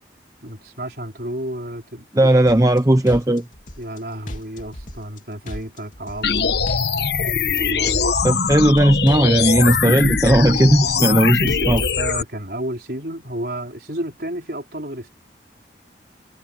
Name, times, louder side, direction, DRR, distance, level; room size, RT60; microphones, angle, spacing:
voice 1, 0.4-2.1 3.8-6.7 7.5-8.1 10.8-15.1, right 1 dB, 55° right, 5.0 m, -31 dB
voice 2, 2.1-3.4 8.2-11.8, right 1 dB, 20° right, 0.8 m, -16 dB
sound 1, 2.5-2.8 3.1-4.0 4.3-5.2 5.5-6.4 6.7-7.6 7.9-8.8 9.1-10.0 10.3-11.2 11.5-12.1, left 1 dB, 45° left, 3.6 m, -36 dB
sound 2, 6.2-12.2, left 5 dB, 70° left, 1.2 m, -21 dB
head